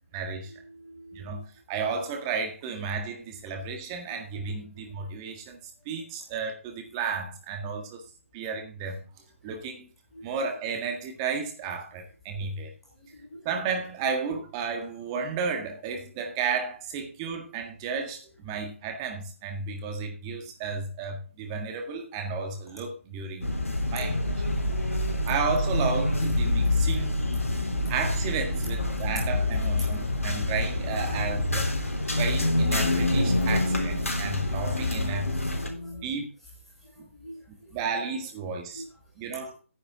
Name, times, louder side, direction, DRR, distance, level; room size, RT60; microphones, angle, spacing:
voice 1, 0.1-0.5 1.1-5.6 5.9-8.0 8.3-9.0 9.4-9.9 10.2-12.7 13.5-23.5 23.9-24.2 25.3-27.2 27.9-31.7 32.1-35.3 36.0-36.3 37.0-37.1 37.7-38.8 39.2-39.5, right 5 dB, 20° right, 1.7 m, -33 dB
voice 2, 0.7-1.4 13.3-13.4 27.9-28.0 35.1-36.0 37.2-37.4 38.7-38.8 39.3-39.5, left 1 dB, ahead, 3.6 m, -42 dB
sound 1, 23.4-35.7, left 2 dB, 85° left, 3.4 m, -26 dB
10.0 x 9.8 x 3.7 m
figure-of-eight pair, 150°, 7 cm